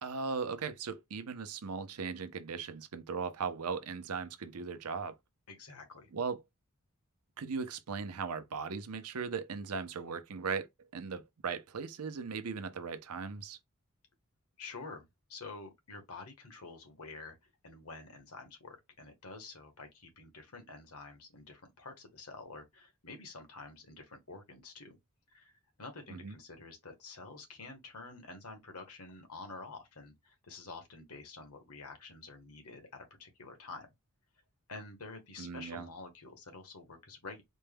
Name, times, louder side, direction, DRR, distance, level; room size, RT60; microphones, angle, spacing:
voice 1, 0.0-5.1 6.1-6.4 7.4-10.7 10.9-13.6 26.1-26.4 35.4-35.9, right 5 dB, 80° right, 0.6 m, -38 dB
voice 2, 5.5-6.1 14.6-25.0 25.3-25.5 25.8-33.9 34.7-37.4, left 3 dB, 75° left, 1.2 m, -48 dB
4.3 x 2.2 x 3.4 m
head